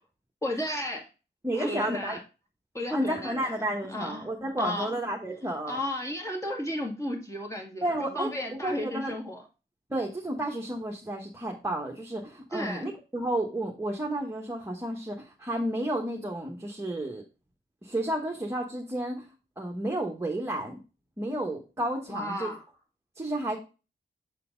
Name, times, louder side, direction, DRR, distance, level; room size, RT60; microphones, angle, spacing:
voice 1, 0.4-1.1 1.5-2.2 2.7-4.3 4.6-4.9 5.7-7.8 8.1-9.4 12.5-12.9 22.1-22.6, left 1 dB, 15° left, 0 dB, 2.2 m, -33 dB
voice 2, 1.4-2.2 2.9-5.8 7.8-8.3 8.6-9.1 9.9-17.2 17.8-19.3 19.6-20.8 21.2-22.5 23.2-23.6, right 1 dB, 15° right, 0 dB, 1.2 m, -31 dB
7.1 x 4.3 x 3.8 m, 0.31 s
wide cardioid pair, 105°, 18 cm